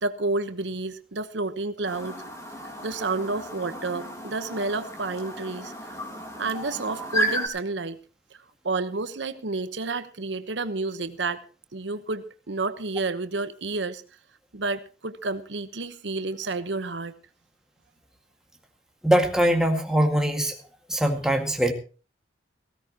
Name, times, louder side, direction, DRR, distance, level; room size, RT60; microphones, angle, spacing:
voice 1, 0.0-2.2 2.8-6.0 6.4-8.0 8.6-11.5 11.7-14.0 14.5-17.1, right 3 dB, 85° right, 11 dB, 1.1 m, -30 dB
Chirp tweet, 1.9-7.5, right 1 dB, 15° left, 3.0 m, -33 dB
voice 2, 19.0-20.6 20.9-21.7, right 1 dB, 5° right, 3 dB, 1.9 m, -22 dB
18.5 x 16.0 x 3.0 m, 0.34 s
head